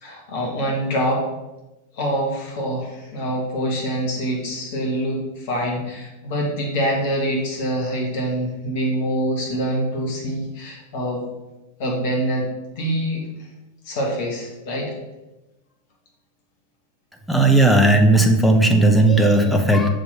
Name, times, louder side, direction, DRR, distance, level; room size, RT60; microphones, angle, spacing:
voice 1, 0.0-1.2 1.9-11.3 11.8-12.5 12.8-13.2 13.9-14.9, equal, 50° left, -1 dB, 1.8 m, -25 dB
voice 2, 17.3-19.9, right 2 dB, ahead, 2 dB, 0.8 m, -15 dB
6.9 x 4.0 x 4.1 m, 1.0 s
figure-of-eight pair, 90°, 0 cm